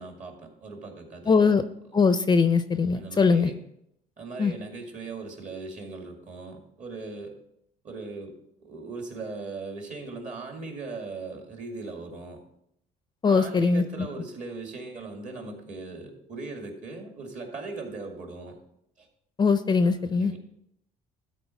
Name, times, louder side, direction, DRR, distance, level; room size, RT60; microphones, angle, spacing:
voice 1, 0.0-1.6 2.9-3.6 4.2-7.3 7.8-8.3 8.6-12.4 13.3-18.6 19.0-19.1 19.8-20.4, right 3 dB, 45° right, 3 dB, 2.3 m, -39 dB
voice 2, 1.3-1.6 1.9-3.5 4.4-4.5 13.2-13.8 19.4-20.3, left 5 dB, 25° left, 11 dB, 0.5 m, -21 dB
13.0 x 4.3 x 5.7 m, 0.76 s
cardioid pair, 110°, 17 cm